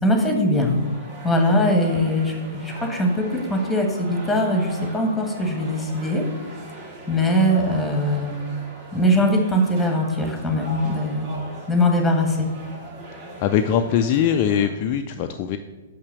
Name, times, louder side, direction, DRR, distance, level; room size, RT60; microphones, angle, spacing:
voice 1, 0.0-0.8 1.2-6.2 7.1-8.3 8.9-11.3 11.7-12.5, left 1 dB, 5° left, 3 dB, 1.5 m, -21 dB
sound 1, 0.5-14.7, right 2 dB, 35° right, 2.3 m, -40 dB
voice 2, 13.4-15.6, left 8 dB, 35° left, 6 dB, 0.4 m, -21 dB
5.9 x 5.5 x 6.8 m, 1.2 s
figure-of-eight pair, 110°, 0 cm